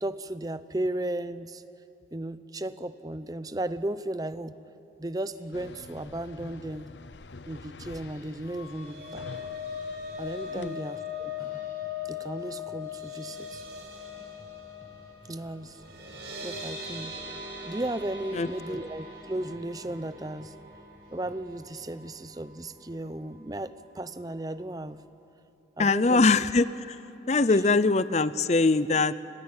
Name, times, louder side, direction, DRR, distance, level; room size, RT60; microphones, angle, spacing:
voice 1, 0.0-1.6 2.1-4.6 5.0-6.9 7.5-9.3 10.2-11.7 12.1-13.6 15.3-15.9 16.4-17.2 17.6-20.5 21.1-25.0 25.8-26.3 27.5-27.7, right 1 dB, 20° right, 13 dB, 0.6 m, -35 dB
sound 1, 5.2-21.8, equal, 55° left, 6.6 m, -58 dB
sound 2, 5.5-10.7, left 3 dB, 85° left, 0.8 m, -47 dB
sound 3, 8.4-22.7 23.0-23.3 23.6-23.7, left 5 dB, 70° right, 5.4 m, -40 dB
voice 2, 18.3-18.8 25.8-27.0 27.3-29.1, left 3 dB, 40° left, 16 dB, 0.5 m, -23 dB
29.0 x 21.0 x 8.8 m, 2.8 s
head